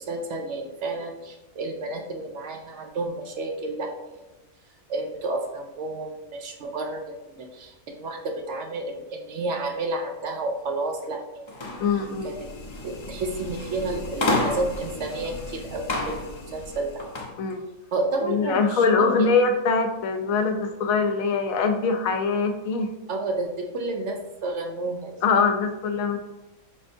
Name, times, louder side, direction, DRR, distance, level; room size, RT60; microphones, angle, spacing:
voice 1, 0.0-4.3 4.9-11.8 12.2-12.5 12.8-17.0 17.9-19.3 23.1-25.2, right 2 dB, 65° right, 3 dB, 0.8 m, -31 dB
sound 1, 11.5-17.3, left 2 dB, 50° left, 0.3 m, -31 dB
voice 2, 11.8-12.4 17.4-17.6 18.3-22.9 25.2-26.2, left 4 dB, 80° left, 6 dB, 1.0 m, -23 dB
5.2 x 3.5 x 2.6 m, 1.0 s
omnidirectional pair, 1.4 m